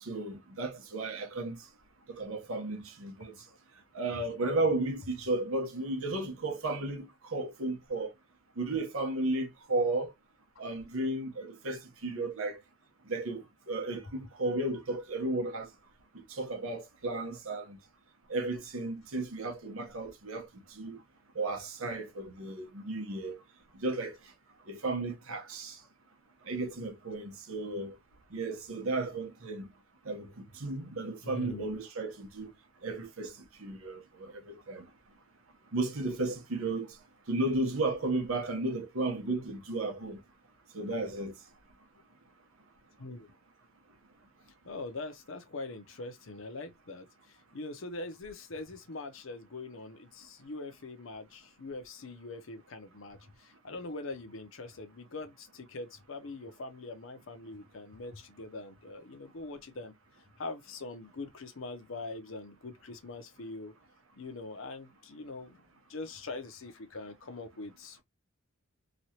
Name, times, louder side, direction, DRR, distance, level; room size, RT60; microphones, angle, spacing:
voice 1, 0.0-1.7 2.1-3.4 3.9-8.1 8.6-10.1 10.6-12.6 13.1-15.7 16.3-17.8 18.3-21.0 21.3-23.4 23.7-24.2 24.7-25.8 26.4-27.9 28.3-29.7 30.0-32.5 32.8-34.9 35.7-37.0 37.3-40.2 40.7-41.3, right 2 dB, 75° right, 0.9 m, -34 dB
voice 2, 31.2-31.7 43.0-43.3 44.6-47.1 47.5-59.9 60.4-63.7 64.2-65.5 65.9-68.0, left 3 dB, 65° left, 0.7 m, -43 dB
3.1 x 2.4 x 2.8 m
head